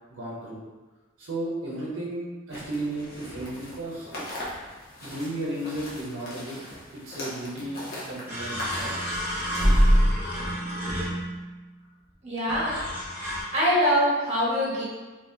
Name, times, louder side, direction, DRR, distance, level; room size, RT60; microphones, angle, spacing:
voice 1, 0.1-0.6 1.2-4.1 5.0-6.6 6.9-8.9, right 1 dB, 75° right, -6 dB, 0.8 m, -34 dB
sound 1, 2.5-10.0, left 1 dB, 50° left, 1.0 m, -40 dB
sound 2, 7.6-7.7 8.3-11.5 12.5-13.4, equal, 10° right, 0.8 m, -25 dB
voice 2, 12.2-12.8 13.5-14.8, equal, 35° right, -7 dB, 1.2 m, -23 dB
3.0 x 2.7 x 3.4 m, 1.3 s
head